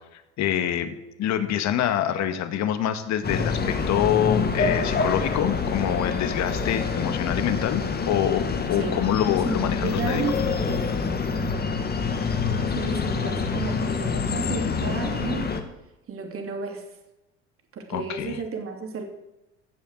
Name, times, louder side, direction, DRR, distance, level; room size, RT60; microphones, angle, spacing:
voice 1, 0.1-0.9 1.2-8.4 8.7-10.2 17.9-18.4, left 10 dB, 55° left, 9 dB, 1.9 m, -25 dB
sound 1, 3.2-15.6, left 5 dB, 30° left, 2.0 m, -26 dB
voice 2, 9.5-10.4 12.7-15.5 16.1-16.8 17.7-19.0, right 5 dB, 40° right, 3 dB, 3.0 m, -32 dB
16.0 x 7.2 x 7.8 m, 0.95 s
hypercardioid pair, 80°, 33 cm